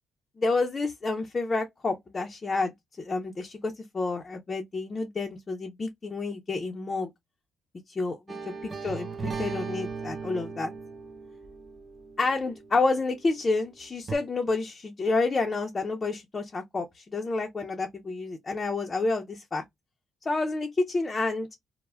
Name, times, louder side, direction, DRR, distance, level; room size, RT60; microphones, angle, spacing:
voice 1, 0.4-7.1 7.9-8.2 8.6-10.7 12.2-19.6 20.3-21.5, left 3 dB, 30° left, 0.5 m, -29 dB
sound 1, 8.3-13.2 14.1-14.2, right 5 dB, 35° right, 0.4 m, -38 dB
2.1 x 2.0 x 3.2 m
cardioid pair, 90°, 0 cm